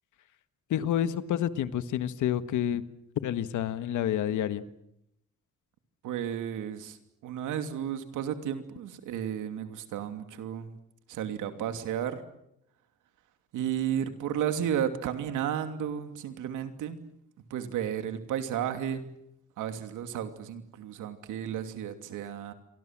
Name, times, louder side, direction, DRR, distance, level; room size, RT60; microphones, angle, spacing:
voice 1, 0.7-2.8 3.1-4.6, left 10 dB, 80° left, 11 dB, 1.7 m, -29 dB
voice 2, 6.0-10.8 11.1-12.2 13.5-17.0 17.5-19.1 19.6-22.5, right 9 dB, 85° right, 8 dB, 2.8 m, -33 dB
28.5 x 24.0 x 7.6 m, 0.80 s
cardioid pair, 90°, 30 cm